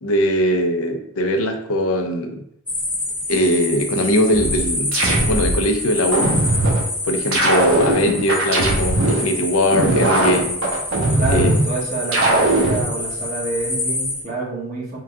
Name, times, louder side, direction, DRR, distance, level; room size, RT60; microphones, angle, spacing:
voice 1, 0.0-2.4 3.3-5.0 5.2-6.4 7.0-10.6 11.3-11.5, equal, 80° left, 5 dB, 0.6 m, -20 dB
sound 1, 2.7-14.2, left 2 dB, 5° left, 0.7 m, -27 dB
sound 2, 4.3-5.6 6.1-6.8 7.3-9.2 9.7-11.6 12.1-12.8, right 2 dB, 70° right, 0.9 m, -19 dB
voice 2, 11.2-15.0, right 3 dB, 40° right, -5 dB, 1.2 m, -27 dB
3.7 x 2.3 x 3.6 m, 0.72 s
head